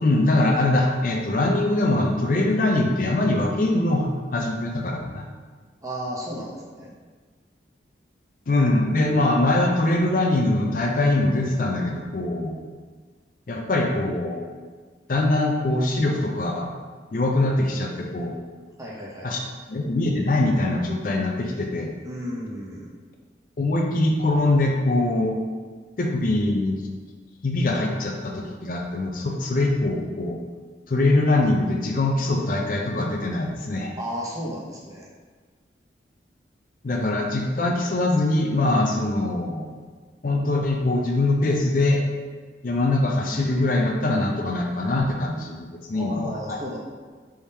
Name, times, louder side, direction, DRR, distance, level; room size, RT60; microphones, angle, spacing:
voice 1, 0.0-5.2 8.5-12.6 13.5-14.4 15.1-16.7 17.1-18.4 19.2-19.4 19.7-21.9 23.6-25.4 26.0-26.8 27.4-30.4 30.9-33.9 36.8-39.7 40.2-42.0 42.6-46.6, left 2 dB, 50° left, 1 dB, 0.4 m, -23 dB
voice 2, 5.8-6.9 18.8-19.3 22.0-22.9 34.0-35.1 45.9-46.8, equal, 20° right, -4 dB, 0.7 m, -33 dB
4.7 x 3.5 x 2.8 m, 1.5 s
head